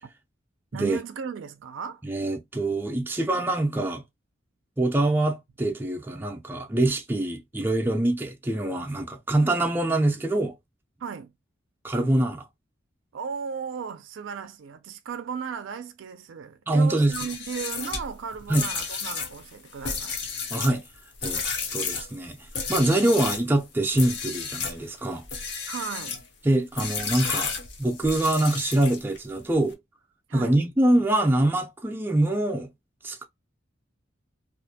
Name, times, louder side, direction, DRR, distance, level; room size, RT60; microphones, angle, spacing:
voice 1, 0.7-2.0 11.0-11.3 13.1-20.2 25.7-26.2 30.3-30.6, right 6 dB, 80° right, 0.4 m, -35 dB
voice 2, 2.0-4.0 4.8-10.5 11.8-12.4 16.7-17.1 18.5-18.7 20.5-20.8 21.2-21.4 21.7-22.4 22.7-25.2 26.4-27.5 27.8-29.8 30.3-32.7 33.0-33.2, right 1 dB, 10° right, 0.4 m, -24 dB
sound 1, 17.0-23.5 23.9-24.8 25.2-26.3 26.8-29.2, left 5 dB, 60° left, 0.6 m, -32 dB
2.4 x 2.1 x 2.7 m
head